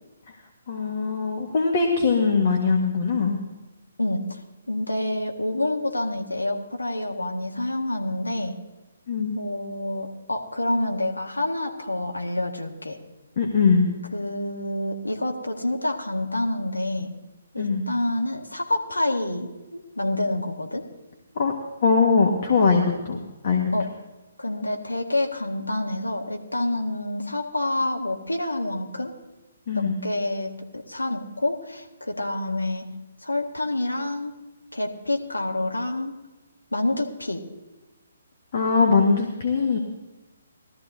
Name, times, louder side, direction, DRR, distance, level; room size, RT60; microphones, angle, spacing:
voice 1, 0.7-3.4 9.1-9.4 13.4-13.9 17.6-17.8 21.3-21.5 21.8-23.2 23.4-23.7 29.7-30.0 38.5-39.8, left 5 dB, 45° left, 1 dB, 1.5 m, -21 dB
voice 2, 4.0-4.4 4.7-8.5 9.3-13.0 14.1-17.1 17.5-20.8 23.7-23.9 24.4-29.1 29.7-32.9 33.2-34.3 34.7-36.1 36.7-37.4, left 1 dB, 85° left, 2 dB, 1.7 m, -28 dB
19.0 x 13.5 x 2.7 m, 1.1 s
figure-of-eight pair, 135°, 0 cm